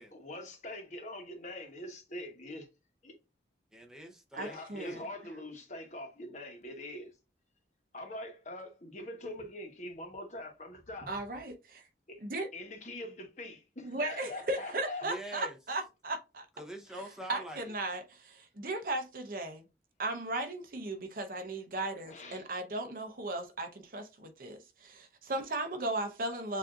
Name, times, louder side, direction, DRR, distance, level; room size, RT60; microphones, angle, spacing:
voice 1, 0.1-2.7 3.0-3.2 4.4-7.2 7.9-11.1 12.1-12.2 12.5-15.1 22.0-22.4, left 1 dB, 40° left, 1.1 m, -43 dB
voice 2, 3.7-5.0 15.0-15.6 16.6-17.6, equal, 5° right, 0.7 m, -44 dB
voice 3, 4.3-5.0 11.1-11.8 12.2-12.5 13.9-16.5 17.3-19.6 20.0-26.6, right 2 dB, 50° right, 0.8 m, -36 dB
7.2 x 2.6 x 2.4 m
head